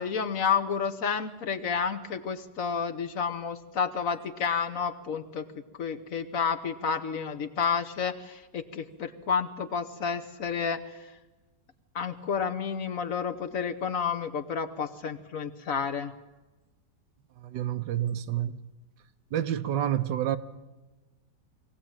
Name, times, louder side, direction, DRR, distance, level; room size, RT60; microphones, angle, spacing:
voice 1, 0.0-11.1 11.9-16.1, left 6 dB, 55° left, 1.3 m, -30 dB
voice 2, 17.4-18.6 19.3-20.4, right 11 dB, 80° right, 1.5 m, -29 dB
22.0 x 16.5 x 8.9 m
omnidirectional pair, 1.9 m